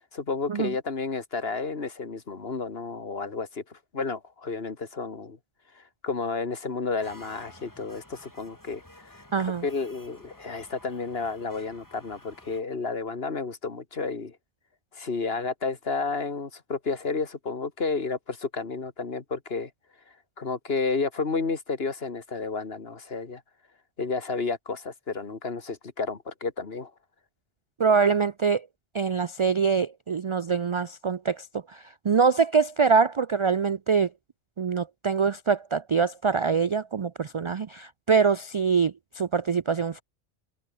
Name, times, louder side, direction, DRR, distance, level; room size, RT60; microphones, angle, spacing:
voice 1, 0.1-5.4 5.8-9.2 9.6-14.4 14.9-19.7 20.4-23.4 24.0-26.9, left 4 dB, 65° left, 2.1 m, -31 dB
sound 1, 7.0-12.6, left 1 dB, 15° left, 3.5 m, -51 dB
voice 2, 9.3-9.6 27.8-28.7 28.9-31.5 31.7-34.1 34.6-40.0, right 5 dB, 45° right, 0.4 m, -24 dB
omnidirectional pair, 1.1 m